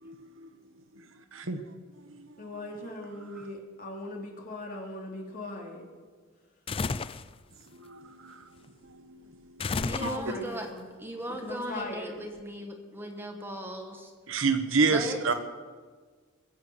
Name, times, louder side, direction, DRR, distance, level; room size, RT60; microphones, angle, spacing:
voice 1, 0.0-0.5 1.3-1.6 2.2-2.3 3.4-3.5 7.7-9.6 10.0-10.1 14.3-15.3, right 4 dB, 65° right, 8 dB, 1.2 m, -30 dB
voice 2, 2.4-5.8 9.7-10.8 11.4-12.2, left 2 dB, 40° left, 0 dB, 3.0 m, -39 dB
sound 1, 6.7-7.3 9.6-10.5, left 4 dB, 25° left, 0.4 m, -32 dB
voice 3, 9.9-10.7 11.0-14.1 14.9-15.3, equal, 10° right, 3 dB, 1.3 m, -38 dB
21.0 x 7.9 x 8.0 m, 1.5 s
head